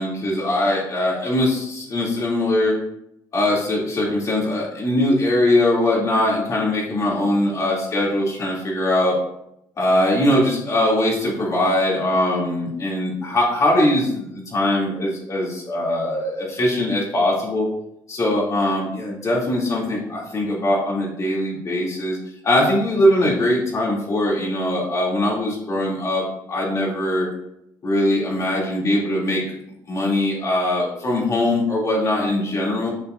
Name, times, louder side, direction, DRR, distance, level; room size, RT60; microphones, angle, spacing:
voice 1, 0.0-2.7 3.3-9.2 9.8-17.6 18.1-22.2 22.4-27.3 27.8-29.4 29.9-32.9, left 1 dB, 40° left, -3 dB, 2.9 m, -21 dB
8.6 x 5.9 x 2.7 m, 0.79 s
cardioid pair, 95°, 8 cm